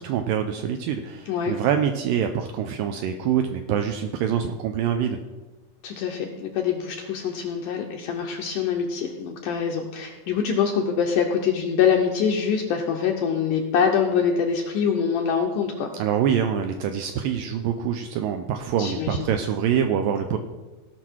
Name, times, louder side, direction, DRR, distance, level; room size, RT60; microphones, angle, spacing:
voice 1, 0.0-5.2 16.0-20.4, right 8 dB, 80° right, 6 dB, 2.1 m, -25 dB
voice 2, 1.3-1.6 5.8-15.9 18.8-19.3, left 7 dB, 75° left, 2 dB, 2.0 m, -24 dB
17.5 x 5.9 x 4.5 m, 1.2 s
omnidirectional pair, 4.4 m